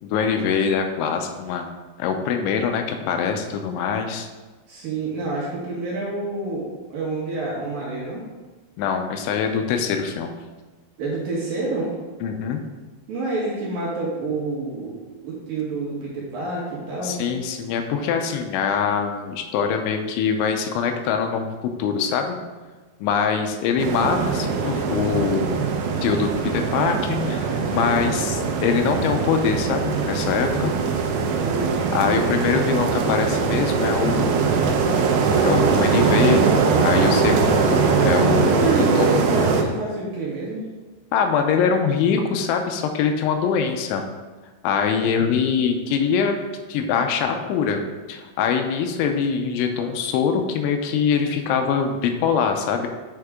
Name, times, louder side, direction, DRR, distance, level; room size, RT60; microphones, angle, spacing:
voice 1, 0.0-1.7 2.0-4.3 8.8-10.4 12.2-12.6 17.0-21.5 21.8-22.4 23.0-25.6 26.0-30.7 31.9-34.5 35.4-38.7 39.0-39.1 41.1-44.0 44.6-46.4 46.7-47.8 48.1-52.9, left 6 dB, 85° left, 5 dB, 3.0 m, -23 dB
voice 2, 4.7-8.2 11.0-11.9 13.1-17.2 31.3-32.4 38.4-40.6, right 2 dB, 60° right, -5 dB, 2.8 m, -28 dB
sound 1, 23.8-39.6, right 5 dB, 80° right, 2.5 m, -21 dB
6.9 x 6.5 x 3.6 m, 1.3 s
omnidirectional pair, 5.3 m